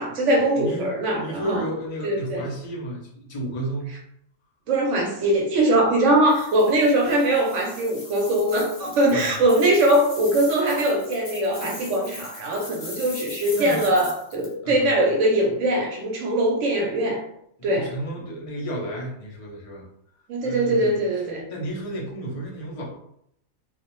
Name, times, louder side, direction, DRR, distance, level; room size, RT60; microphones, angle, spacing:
voice 1, 0.0-1.6 2.0-2.4 4.7-17.2 17.6-17.9 20.3-21.4, right 1 dB, 70° right, -1 dB, 0.9 m, -21 dB
voice 2, 0.6-4.0 9.1-9.4 13.5-14.1 14.6-14.9 17.6-19.9 20.4-21.0 21.5-23.0, right 1 dB, 60° left, -3 dB, 0.3 m, -32 dB
sound 1, 6.3-14.5, left 3 dB, 45° left, 0.7 m, -40 dB
2.4 x 2.0 x 2.9 m, 0.73 s
omnidirectional pair, 1.4 m